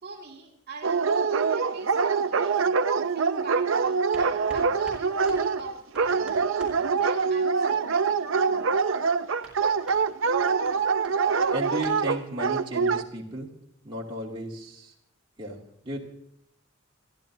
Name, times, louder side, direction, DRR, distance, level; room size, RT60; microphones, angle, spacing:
voice 1, 0.0-2.6 3.1-6.4 6.9-8.8, right 4 dB, 55° right, 2 dB, 2.3 m, -44 dB
Dog, 0.8-13.0, right 5 dB, 70° right, 0.6 m, -24 dB
sound 1, 3.3-13.1, right 1 dB, 5° right, 4.8 m, -52 dB
voice 2, 11.5-13.5 13.8-14.9 15.4-15.6 15.8-16.0, right 1 dB, 25° right, -4 dB, 2.4 m, -34 dB
28.0 x 11.5 x 2.7 m, 0.73 s
head